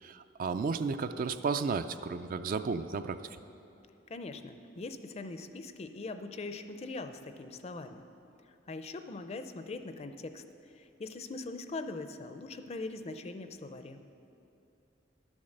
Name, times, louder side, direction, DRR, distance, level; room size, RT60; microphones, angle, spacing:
voice 1, 0.0-3.2, right 4 dB, 50° right, 10 dB, 0.4 m, -33 dB
voice 2, 4.1-8.0 8.7-10.4 10.8-14.0, left 3 dB, 35° left, 9 dB, 0.5 m, -41 dB
11.0 x 7.2 x 6.5 m, 2.8 s
head